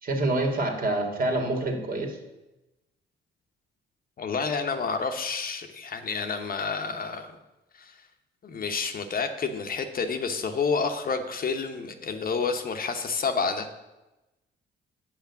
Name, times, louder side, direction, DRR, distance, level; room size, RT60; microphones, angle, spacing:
voice 1, 0.0-2.2, right 2 dB, 45° right, 2 dB, 2.1 m, -27 dB
voice 2, 4.2-7.3 7.8-7.9 8.4-13.7, left 5 dB, 45° left, 7 dB, 1.0 m, -29 dB
8.1 x 6.0 x 7.0 m, 1.0 s
cardioid pair, 90°, 20 cm